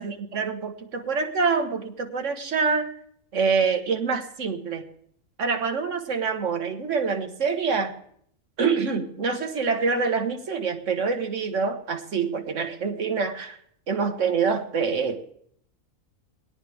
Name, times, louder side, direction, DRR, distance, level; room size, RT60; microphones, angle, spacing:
voice 1, 0.0-2.9 3.3-4.8 5.4-7.9 8.6-13.6 13.9-15.3, right 5 dB, 60° right, 6 dB, 1.7 m, -26 dB
20.5 x 17.5 x 3.5 m, 0.66 s
omnidirectional pair, 1.5 m